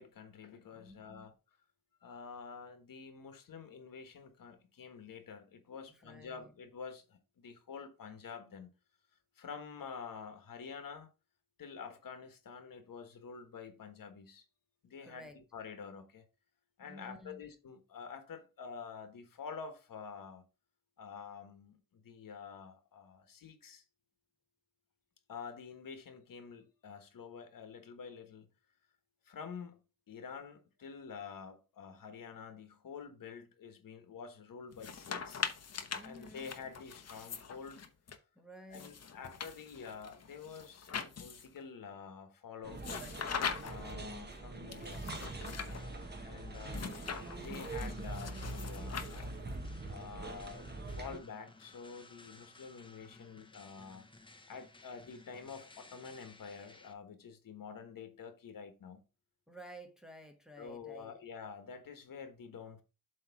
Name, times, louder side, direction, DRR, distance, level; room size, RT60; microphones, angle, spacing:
voice 1, 0.0-1.3 2.0-8.7 9.4-11.1 11.6-14.4 14.8-16.2 16.8-20.4 21.0-23.8 25.3-28.5 29.3-29.8 30.1-35.4 36.0-37.8 38.7-42.8 43.6-45.9 46.2-46.8 47.4-49.3 49.9-54.0 54.5-59.0 60.6-62.8, left 6 dB, 70° left, 1.3 m, -48 dB
voice 2, 0.7-1.4 5.9-6.5 15.0-15.4 16.8-17.5 35.9-36.5 38.3-39.0 59.5-61.2, equal, ahead, 1.0 m, -53 dB
sound 1, 34.7-38.2 38.7-41.6 42.8-43.9 44.7-45.8 46.7-49.5, left 6 dB, 45° left, 0.8 m, -42 dB
sound 2, 42.6-51.2, right 2 dB, 30° right, 1.1 m, -43 dB
sound 3, 45.3-56.9, left 2 dB, 15° left, 0.8 m, -58 dB
7.9 x 3.2 x 5.8 m
wide cardioid pair, 155°, 34 cm